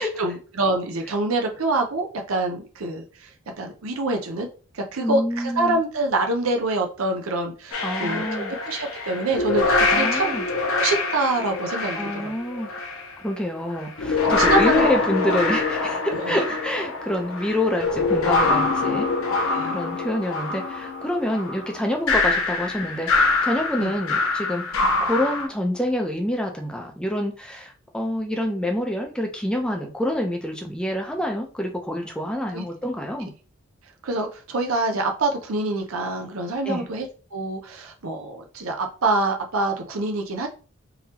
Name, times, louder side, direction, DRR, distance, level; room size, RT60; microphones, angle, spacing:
voice 1, 0.0-3.3 3.6-4.5 4.7-10.4 10.7-12.3 14.4-14.9 16.1-16.4 19.5-19.8 23.8-23.9 32.5-32.6 34.0-40.5, right 2 dB, 90° right, 3 dB, 0.7 m, -26 dB
voice 2, 5.0-5.8 7.8-8.5 9.9-10.4 12.0-12.7 13.2-19.1 19.7-33.3 36.7-36.9, left 1 dB, 5° left, 2 dB, 0.6 m, -27 dB
sound 1, 7.7-13.1 13.8-25.5, left 3 dB, 85° left, 0.7 m, -24 dB
3.9 x 2.9 x 2.8 m, 0.36 s
head